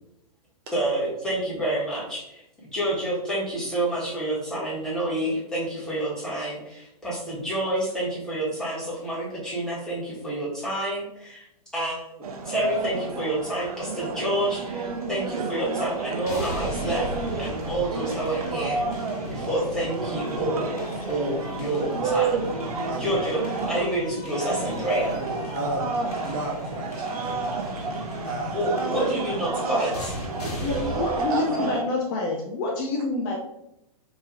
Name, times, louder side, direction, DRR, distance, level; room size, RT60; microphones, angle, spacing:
voice 1, 0.7-2.4 2.7-11.5 11.7-17.1 17.4-18.8 19.3-20.8 21.1-22.4 23.0-25.1 28.5-30.1, right 1 dB, 5° left, -8 dB, 1.4 m, -28 dB
sound 1, 12.2-23.9 24.3-31.8, right 4 dB, 70° right, 0.7 m, -30 dB
sound 2, 16.3-31.2, left 2 dB, 85° left, 1.1 m, -37 dB
voice 2, 26.2-27.4 28.2-28.7 29.8-29.9 30.4-30.5 31.3-31.7, right 2 dB, 35° right, 0 dB, 0.5 m, -32 dB
voice 3, 30.6-33.4, left 2 dB, 35° left, 0 dB, 0.5 m, -27 dB
3.0 x 2.7 x 3.7 m, 0.82 s
hypercardioid pair, 145°, 19 cm